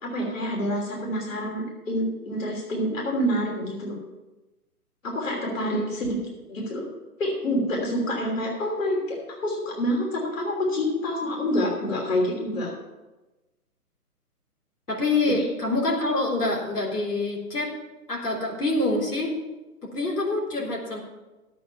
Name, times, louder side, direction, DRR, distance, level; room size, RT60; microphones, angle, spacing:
voice 1, 0.0-4.0 5.0-6.2 6.5-6.9 7.2-12.7 15.4-15.5, equal, 55° left, -1 dB, 3.1 m, -27 dB
voice 2, 5.6-6.1 14.9-17.7 18.1-19.3 19.8-21.0, left 2 dB, 85° left, -3 dB, 3.7 m, -26 dB
12.0 x 8.5 x 5.7 m, 1.1 s
figure-of-eight pair, 135°, 46 cm